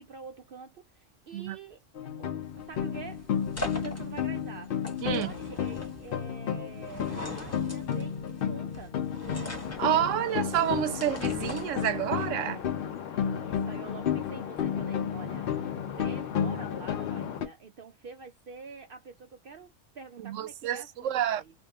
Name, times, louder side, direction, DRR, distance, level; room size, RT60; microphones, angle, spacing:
voice 1, 0.0-1.8 2.2-3.3 3.8-8.9 13.1-15.5 16.0-21.5, right 5 dB, 60° right, 0.6 m, -46 dB
sound 1, 1.9-17.5, left 8 dB, 60° left, 0.6 m, -32 dB
sound 2, 2.4-12.3, left 1 dB, 15° left, 0.6 m, -42 dB
sound 3, 9.6-17.4, left 8 dB, 85° left, 1.0 m, -40 dB
voice 2, 9.8-12.6 20.2-21.4, right 11 dB, 90° right, 1.0 m, -29 dB
2.9 x 2.6 x 3.4 m
omnidirectional pair, 1.3 m